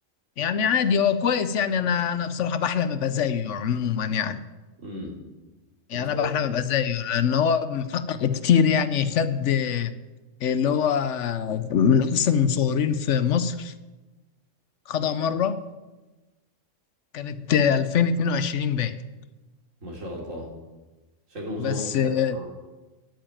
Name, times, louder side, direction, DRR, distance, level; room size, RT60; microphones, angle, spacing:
voice 1, 0.4-4.4 5.9-9.9 10.4-13.7 14.9-15.6 17.1-19.0 21.6-22.4, left 7 dB, 70° left, 12 dB, 1.0 m, -23 dB
voice 2, 4.8-5.2 5.9-6.3 19.8-20.5 21.3-22.5, equal, 80° right, -1 dB, 3.4 m, -35 dB
9.3 x 9.2 x 8.9 m, 1.1 s
omnidirectional pair, 1.3 m